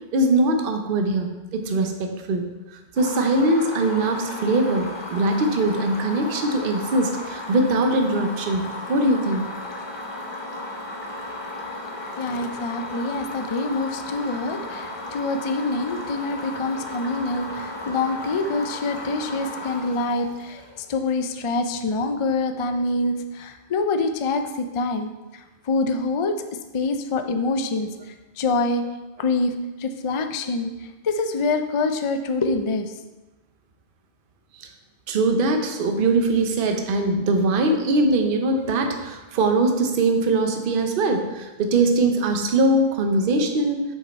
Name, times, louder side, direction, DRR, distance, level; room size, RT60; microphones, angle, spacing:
voice 1, 0.1-2.5 3.0-9.5 34.6-34.7 35.1-43.9, right 2 dB, 60° right, 4 dB, 0.9 m, -22 dB
sound 1, 3.0-20.9, left 2 dB, 25° left, 0.9 m, -35 dB
voice 2, 12.2-26.4 26.7-28.8 29.2-33.1, left 3 dB, 50° left, 7 dB, 0.3 m, -26 dB
6.6 x 5.4 x 4.1 m, 1.1 s
omnidirectional pair, 1.1 m